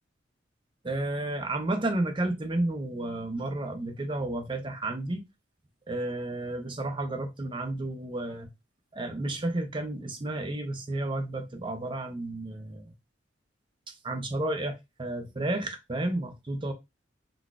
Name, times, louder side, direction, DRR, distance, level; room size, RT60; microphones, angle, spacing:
voice 1, 0.8-5.2 5.9-8.5 8.9-12.9 14.0-16.7, right 2 dB, 25° right, 0.6 m, -32 dB
3.9 x 2.4 x 2.3 m
head